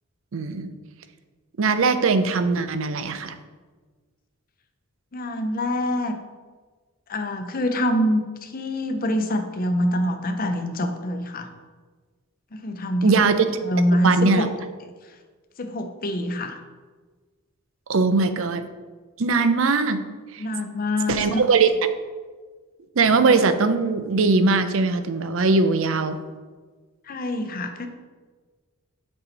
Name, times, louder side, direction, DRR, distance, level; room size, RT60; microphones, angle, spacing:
voice 1, 0.3-0.7 1.6-3.4 13.0-13.5 14.0-14.5 17.9-18.7 19.2-20.0 20.3-20.5 21.1-21.7 23.0-26.2, right 4 dB, 65° right, 10 dB, 0.5 m, -20 dB
voice 2, 5.1-6.2 7.1-11.5 12.5-13.2 13.6-14.5 15.6-16.6 20.4-21.4 27.1-27.9, left 1 dB, 45° left, 6 dB, 0.7 m, -25 dB
6.8 x 5.6 x 4.1 m, 1.4 s
head